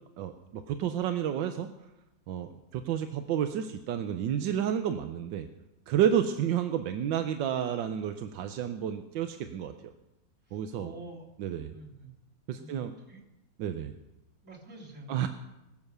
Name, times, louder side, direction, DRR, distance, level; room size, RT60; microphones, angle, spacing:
voice 1, 0.2-1.7 2.3-5.5 5.9-9.9 10.5-10.9 11.4-11.7 12.5-12.9 13.6-13.9 15.1-15.3, right 9 dB, 90° right, 7 dB, 1.5 m, -30 dB
voice 2, 10.4-11.3 11.7-12.1 12.5-13.2 14.4-15.3, right 2 dB, 40° right, 0 dB, 3.6 m, -47 dB
21.5 x 7.2 x 6.7 m, 0.93 s
omnidirectional pair, 1.9 m